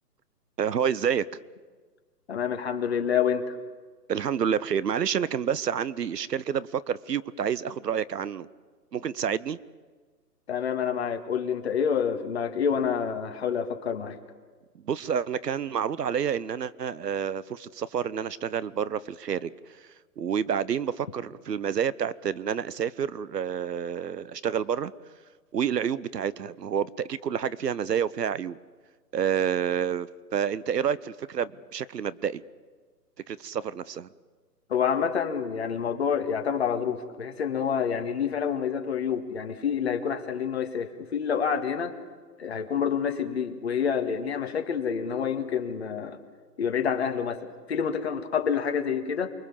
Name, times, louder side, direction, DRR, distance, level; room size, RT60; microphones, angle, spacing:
voice 1, 0.6-1.3 4.1-8.5 8.9-9.6 14.7-24.9 25.5-28.6 29.1-32.4 33.3-34.1, right 8 dB, 75° right, 19 dB, 1.0 m, -29 dB
voice 2, 2.3-3.6 10.5-14.2 34.7-42.0 42.4-46.2 46.6-49.3, left 7 dB, 40° left, 5 dB, 2.0 m, -28 dB
29.0 x 23.0 x 7.3 m, 1.4 s
hypercardioid pair, 170°, 49 cm